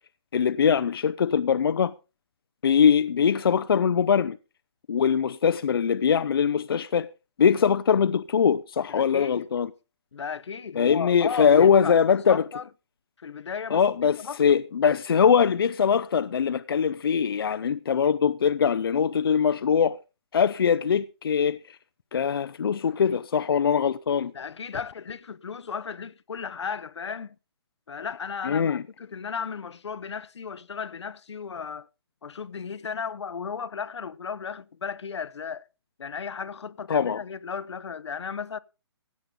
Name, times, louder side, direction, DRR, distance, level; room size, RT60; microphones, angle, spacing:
voice 1, 0.3-1.9 2.6-4.4 4.9-7.1 7.4-9.7 10.8-12.4 13.7-20.0 20.3-21.8 22.1-24.3 28.4-28.8 36.9-37.2, left 7 dB, 60° left, 0.5 m, -22 dB
voice 2, 8.9-9.5 10.1-12.7 13.2-13.8 14.2-14.4 24.3-27.3 27.9-31.9 32.2-35.7 36.0-38.6, left 6 dB, 85° left, 0.9 m, -35 dB
16.0 x 8.3 x 3.8 m
hypercardioid pair, 175°, 14 cm